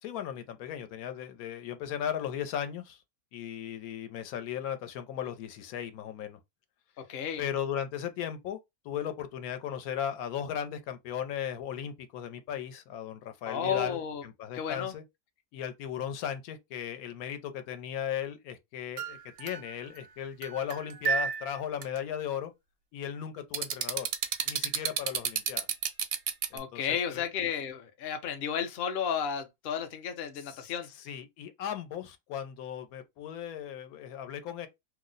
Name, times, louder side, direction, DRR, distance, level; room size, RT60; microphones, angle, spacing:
voice 1, 0.0-3.0 3.3-6.4 7.4-8.6 8.8-15.0 15.5-22.5 22.9-24.1 24.5-25.7 26.5-27.2 30.3-34.7, left 9 dB, 85° left, 1.1 m, -37 dB
voice 2, 7.1-7.4 13.5-14.2 14.5-14.9 26.5-30.9, left 7 dB, 55° left, 0.6 m, -33 dB
sound 1, 19.0-20.0 20.4-21.5 21.8-22.0 23.5-26.6, right 7 dB, 65° right, 0.7 m, -30 dB
2.6 x 2.0 x 3.7 m
omnidirectional pair, 1.5 m